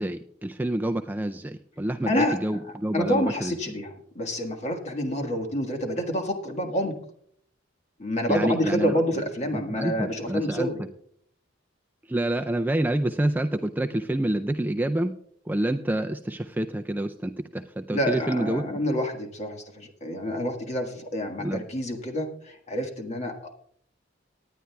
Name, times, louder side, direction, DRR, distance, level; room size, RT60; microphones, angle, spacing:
voice 1, 0.0-3.6 8.3-8.9 9.5-10.7 12.1-15.1 15.5-18.6 21.4-21.6, right 1 dB, 10° right, 6 dB, 0.4 m, -27 dB
voice 2, 2.0-3.9 4.1-6.9 8.0-10.8 17.9-23.6, equal, 35° left, 3 dB, 1.6 m, -28 dB
19.0 x 10.0 x 2.3 m, 0.65 s
head